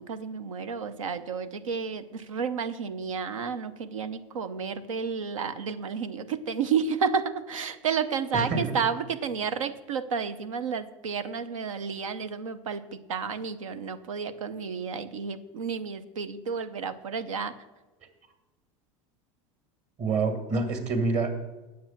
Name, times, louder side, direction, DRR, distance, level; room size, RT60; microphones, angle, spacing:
voice 1, 0.0-17.6, right 6 dB, 90° right, 11 dB, 0.7 m, -31 dB
voice 2, 8.3-8.8 20.0-21.3, right 3 dB, 45° right, 6 dB, 2.1 m, -27 dB
9.6 x 7.3 x 7.3 m, 1.1 s
hypercardioid pair, 95°, 16 cm